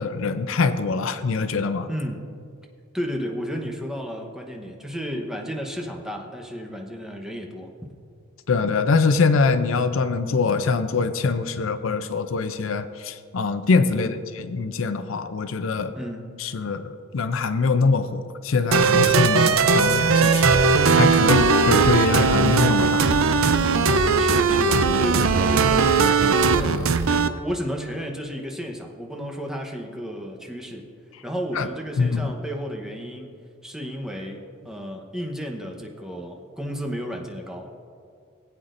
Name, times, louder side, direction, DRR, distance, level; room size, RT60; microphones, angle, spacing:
voice 1, 0.0-1.9 8.5-15.9 16.4-23.1 31.5-31.7 32.0-32.3, left 4 dB, 70° left, 11 dB, 0.5 m, -23 dB
voice 2, 1.9-2.2 2.9-7.7 13.9-14.2 16.0-16.3 24.2-26.0 26.6-30.9 31.2-33.4 33.6-37.9, equal, 5° right, 1 dB, 1.0 m, -32 dB
sound 1, 18.7-27.3, right 4 dB, 90° right, 0.5 m, -18 dB
19.5 x 8.6 x 2.6 m, 2.3 s
head